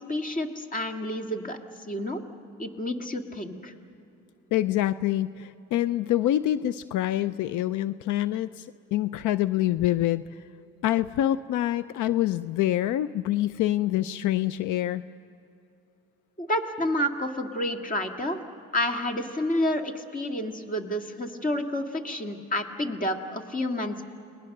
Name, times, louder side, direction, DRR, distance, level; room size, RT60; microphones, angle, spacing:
voice 1, 0.1-1.6 1.9-2.2 2.6-3.7 16.4-18.4 18.7-24.0, left 1 dB, 25° left, 5 dB, 2.0 m, -29 dB
voice 2, 4.5-10.2 10.8-15.0, left 13 dB, 80° left, 15 dB, 0.5 m, -26 dB
30.0 x 20.0 x 6.6 m, 2.7 s
cardioid pair, 90°, 30 cm